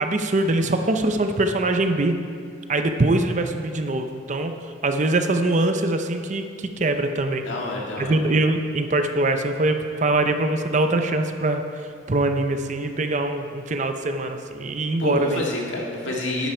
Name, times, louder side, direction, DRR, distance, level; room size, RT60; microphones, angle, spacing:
voice 1, 0.0-2.2 2.7-4.5 4.8-7.4 8.0-11.6 12.1-15.4, right 2 dB, 40° right, 6 dB, 0.6 m, -23 dB
voice 2, 7.4-8.2 15.0-16.5, left 2 dB, 75° left, -1 dB, 1.9 m, -28 dB
12.0 x 9.2 x 4.4 m, 2.2 s
head